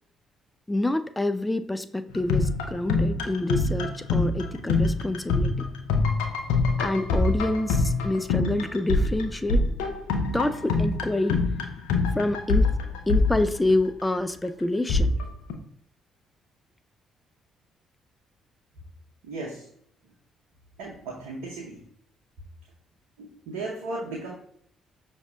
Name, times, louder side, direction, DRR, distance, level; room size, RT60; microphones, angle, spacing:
voice 1, 0.7-5.5 6.8-9.6 10.3-11.4 12.1-12.7 13.1-15.1, left 1 dB, 15° left, 11 dB, 0.3 m, -27 dB
sound 1, 2.1-14.0 14.9-15.5, left 3 dB, 80° left, 0.5 m, -25 dB
voice 2, 19.2-19.7 20.8-21.8 23.2-24.3, right 2 dB, 75° right, -3 dB, 0.7 m, -35 dB
5.8 x 2.8 x 2.3 m, 0.67 s
hypercardioid pair, 50°, 0 cm